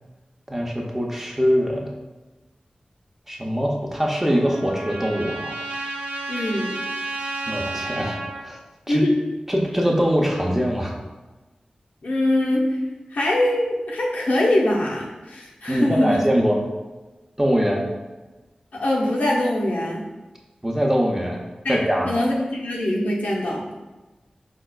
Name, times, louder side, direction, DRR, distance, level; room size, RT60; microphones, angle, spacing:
voice 1, 0.5-1.9 3.3-5.5 7.5-8.6 8.9-9.0 9.5-10.9 15.7-16.6 17.4-17.8 20.6-21.4 21.7-22.1, equal, 15° right, -1 dB, 0.5 m, -22 dB
Trumpet, 3.9-8.4, right 2 dB, 85° right, 0.4 m, -32 dB
voice 2, 6.3-6.7 8.9-9.2 12.0-12.8 13.1-16.2 18.7-20.1 21.6-23.7, left 1 dB, 90° left, -3 dB, 0.6 m, -22 dB
4.4 x 2.3 x 2.2 m, 1.1 s
wide cardioid pair, 70°, 3 cm